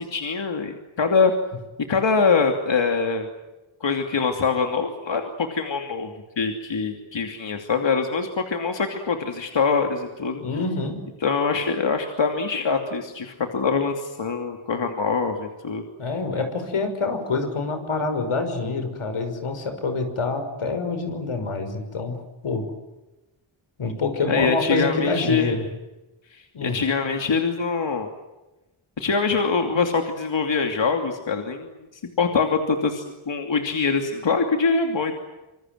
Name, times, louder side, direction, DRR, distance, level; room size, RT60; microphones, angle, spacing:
voice 1, 0.0-1.3 1.9-3.3 3.8-10.4 11.2-15.8 24.3-25.6 26.3-28.1 29.0-35.2, left 5 dB, 60° left, 4 dB, 2.9 m, -24 dB
voice 2, 10.4-11.0 16.0-22.2 22.4-22.6 23.8-25.6 26.5-26.8, left 3 dB, 90° left, 7 dB, 6.1 m, -26 dB
26.5 x 26.5 x 7.9 m, 1.0 s
wide cardioid pair, 130°, 49 cm